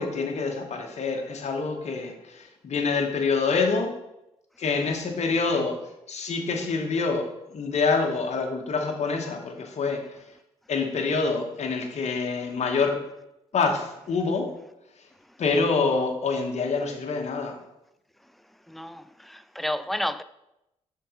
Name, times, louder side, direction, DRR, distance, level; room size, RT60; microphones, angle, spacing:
voice 1, 0.0-3.9 4.6-5.8 6.1-7.2 7.5-10.2 10.7-13.0 13.5-14.5 15.4-17.6, left 4 dB, 60° left, 1.1 m, -26 dB
voice 2, 18.7-20.2, left 1 dB, ahead, 0.3 m, -32 dB
5.7 x 3.8 x 5.0 m
supercardioid pair, 60°, 13 cm